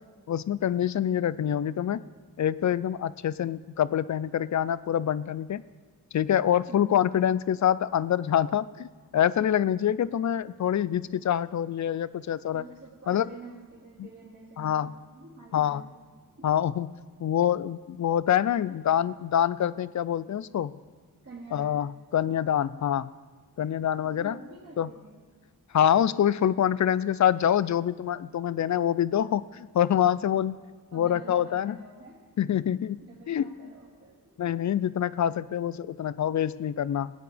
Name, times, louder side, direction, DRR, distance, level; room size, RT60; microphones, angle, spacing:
voice 1, 0.3-2.0 2.4-5.6 6.1-12.6 13.1-13.3 14.6-14.9 15.5-15.8 16.4-16.9 17.2-20.7 21.5-23.1 23.6-24.3 24.8-24.9 25.7-30.6 30.9-31.8 32.4-33.0 33.3-33.5 34.4-37.1, left 10 dB, 50° left, 17 dB, 0.4 m, -26 dB
voice 2, 6.7-7.0 12.5-16.0 16.4-16.6 21.2-21.8 24.0-25.2 30.9-32.2 33.0-34.6, right 3 dB, 40° right, -7 dB, 2.7 m, -48 dB
19.5 x 9.2 x 3.4 m, 1.5 s
wide cardioid pair, 90°, 38 cm